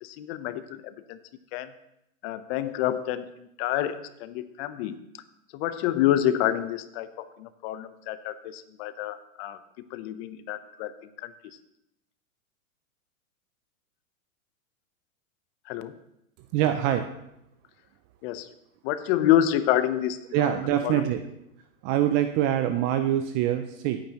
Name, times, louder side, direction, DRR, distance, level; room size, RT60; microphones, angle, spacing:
voice 1, 0.0-1.2 1.5-1.7 2.2-5.0 5.5-11.3 15.7-16.0 18.2-18.5 18.8-20.5 20.8-21.1, left 12 dB, 45° left, 12 dB, 0.9 m, -28 dB
voice 2, 16.5-17.1 20.3-21.2 21.8-24.0, right 11 dB, 25° right, 8 dB, 0.3 m, -24 dB
16.5 x 9.0 x 3.0 m, 0.81 s
hypercardioid pair, 120°, 43 cm